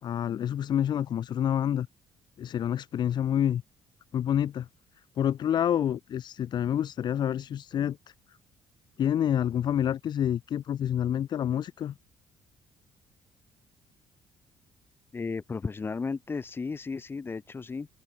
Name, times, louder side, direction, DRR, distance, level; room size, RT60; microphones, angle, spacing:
voice 1, 0.0-1.9 2.4-3.6 4.1-4.7 5.2-8.0 9.0-11.9, left 10 dB, 55° left, 2.4 m, -28 dB
voice 2, 15.1-17.9, left 4 dB, 25° left, 2.9 m, -34 dB
open air
cardioid pair, 125°, 9 cm